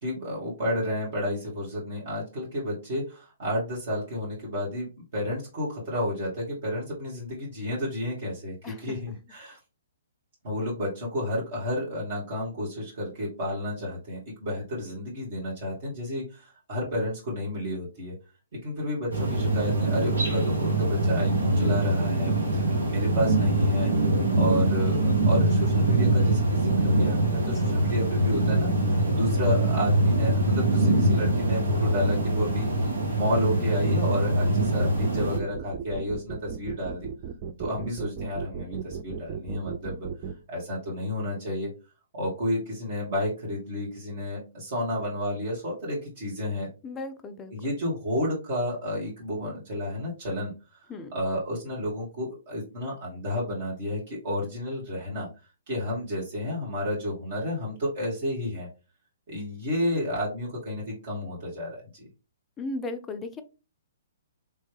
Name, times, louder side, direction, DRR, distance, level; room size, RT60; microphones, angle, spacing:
voice 1, 0.0-9.6 10.4-18.1 18.5-23.9 24.4-28.7 29.1-32.7 33.1-37.1 37.6-40.1 40.5-41.7 42.1-46.7 47.5-50.8 51.1-55.3 55.7-58.7 59.3-62.1, left 1 dB, 50° right, -6 dB, 1.7 m, -31 dB
voice 2, 8.6-9.0 27.4-27.6 46.8-47.5 50.9-51.1 62.6-63.4, left 2 dB, 15° left, 8 dB, 0.5 m, -36 dB
sound 1, 19.1-35.4, right 1 dB, 75° right, 1.2 m, -23 dB
sound 2, 34.4-40.3, right 7 dB, 35° right, 0.4 m, -36 dB
3.5 x 3.2 x 3.3 m, 0.31 s
figure-of-eight pair, 120°, 0 cm